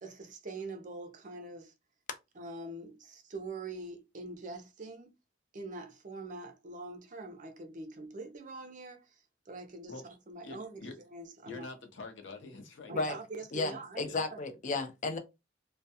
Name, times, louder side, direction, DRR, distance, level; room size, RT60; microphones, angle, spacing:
voice 1, 0.0-1.7 2.4-5.1 5.5-9.9 10.3-10.8 11.1-11.7 12.9-14.0 14.3-14.4, right 3 dB, 45° right, 0.5 m, -44 dB
voice 2, 10.4-11.0 11.5-13.2 14.0-14.2, left 2 dB, 90° left, 0.7 m, -46 dB
voice 3, 13.5-15.2, left 3 dB, 45° left, 0.5 m, -33 dB
2.3 x 2.2 x 2.7 m
head